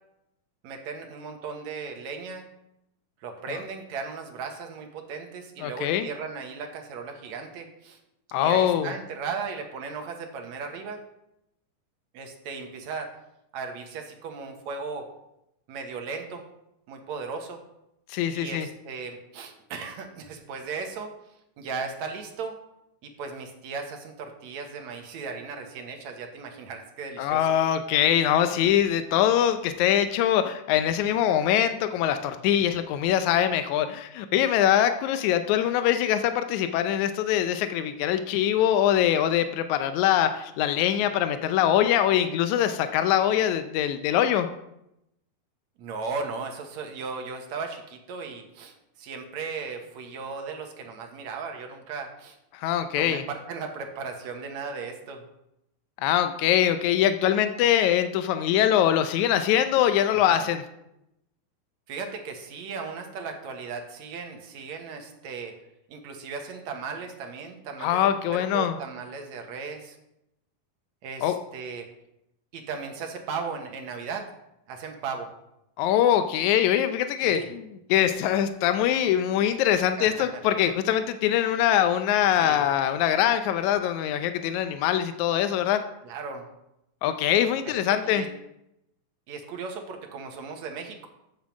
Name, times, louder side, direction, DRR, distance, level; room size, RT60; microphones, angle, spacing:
voice 1, 0.6-2.5 3.2-8.0 8.4-11.0 12.1-13.1 13.5-15.1 15.7-16.4 16.9-17.6 18.3-21.1 21.6-22.6 23.0-27.5 45.8-52.4 53.0-55.2 60.1-60.4 61.9-65.5 65.9-70.0 71.0-71.9 72.5-74.3 74.7-75.3 77.2-77.5 80.0-80.1 82.4-82.6 86.0-86.4 87.6-88.3 89.3-91.1, right 5 dB, 65° right, 3 dB, 2.2 m, -36 dB
voice 2, 5.6-6.1 8.3-8.9 18.1-18.7 27.2-44.5 52.5-53.2 56.0-60.6 67.8-68.8 71.2-71.3 75.8-77.6 77.9-85.8 87.0-88.2, left 10 dB, 80° left, 9 dB, 1.7 m, -23 dB
7.5 x 7.3 x 7.2 m, 0.84 s
omnidirectional pair, 4.0 m